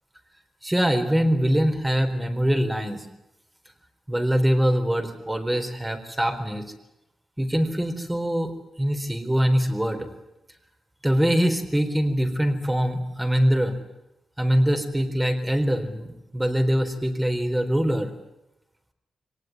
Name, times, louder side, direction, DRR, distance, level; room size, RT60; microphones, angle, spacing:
voice 1, 0.6-3.1 4.1-6.6 7.4-8.5 8.8-10.1 11.0-13.8 14.4-18.1, equal, 10° right, 5 dB, 4.2 m, -23 dB
24.5 x 19.0 x 9.8 m, 0.93 s
cardioid pair, 75°, 0 cm